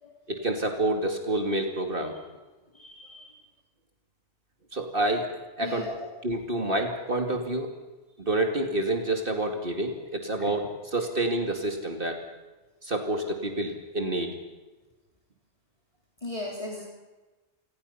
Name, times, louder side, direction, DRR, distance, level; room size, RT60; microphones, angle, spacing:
voice 1, 0.3-2.2 4.7-5.3 5.6-5.9 6.2-7.7 8.2-12.2 12.8-14.4, right 1 dB, 50° right, 4 dB, 2.5 m, -28 dB
voice 2, 2.7-3.4 5.6-5.9 16.2-16.8, left 1 dB, 30° left, -2 dB, 3.5 m, -37 dB
28.0 x 20.0 x 5.7 m, 1.2 s
omnidirectional pair, 1.2 m